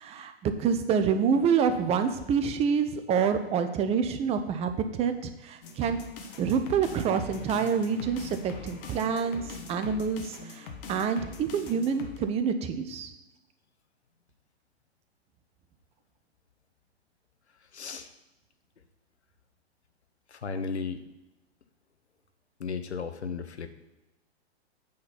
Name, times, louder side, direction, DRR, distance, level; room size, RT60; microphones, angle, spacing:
voice 1, 0.0-6.0 6.4-9.4 9.7-13.1, right 6 dB, 20° right, 9 dB, 0.5 m, -27 dB
sound 1, 5.6-12.2, left 4 dB, 55° left, 1.3 m, -42 dB
voice 2, 17.7-18.1 20.3-21.0 22.6-23.7, left 5 dB, 80° left, 9 dB, 0.8 m, -34 dB
8.5 x 3.9 x 5.7 m, 1.0 s
figure-of-eight pair, 105°, 33 cm